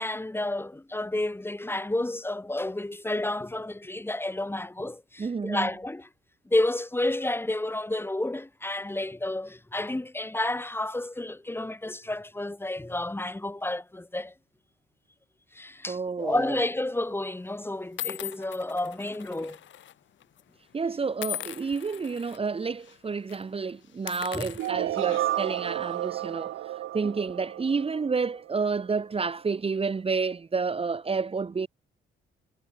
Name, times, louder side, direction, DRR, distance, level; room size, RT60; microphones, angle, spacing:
voice 1, 0.0-6.1 6.5-14.3 15.5-19.6 24.3-24.5, left 1 dB, 10° left, 4.2 m, -30 dB
voice 2, 5.2-5.7 15.9-16.5 20.7-26.6 26.9-31.7, right 4 dB, 30° right, 1.3 m, -30 dB
sound 1, 16.3-16.6 17.3-17.4 18.0-19.9 20.2-20.4 21.2-22.4 22.8-23.0 23.3-23.4 23.9-25.5, left 11 dB, 70° left, 2.5 m, -39 dB
sound 2, 24.6-28.5, right 14 dB, 85° right, 5.0 m, -31 dB
cardioid pair, 90°, 20 cm